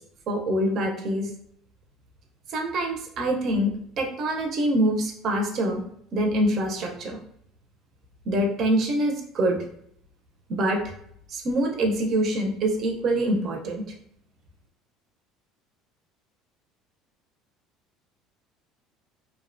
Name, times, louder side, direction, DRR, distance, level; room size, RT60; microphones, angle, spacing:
voice 1, 0.3-1.3 2.5-5.8 6.1-7.2 8.3-9.7 10.5-10.8 11.3-13.9, right 1 dB, 45° right, 3 dB, 0.5 m, -25 dB
2.6 x 2.1 x 2.5 m, 0.69 s
cardioid pair, 135°, 0 cm